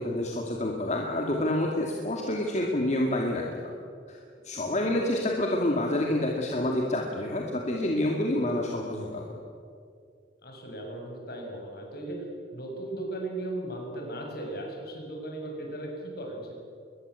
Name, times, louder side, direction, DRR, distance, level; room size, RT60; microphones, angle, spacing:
voice 1, 0.0-3.7 4.1-4.2 4.4-9.4, left 1 dB, 40° left, 0 dB, 2.4 m, -28 dB
voice 2, 4.7-5.1 10.4-12.2 12.5-16.5, right 1 dB, 60° left, 1 dB, 6.7 m, -37 dB
23.0 x 21.0 x 8.3 m, 2.3 s
head